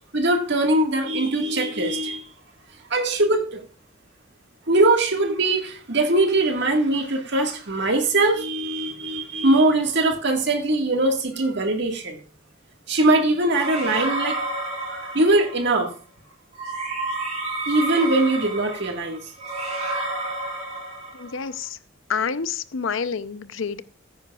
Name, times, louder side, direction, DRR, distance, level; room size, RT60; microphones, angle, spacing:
voice 1, 0.1-2.2 2.9-3.6 4.7-12.2 12.9-14.4 14.9-15.9 17.7-19.2, right 2 dB, 60° right, 1.7 m, -21 dB
sound 1, 13.5-15.7 16.5-21.4, right 2 dB, 40° right, 3.5 m, -30 dB
voice 2, 21.1-21.8 22.1-23.8, left 6 dB, 80° left, 0.6 m, -28 dB
14.5 x 9.9 x 2.4 m
head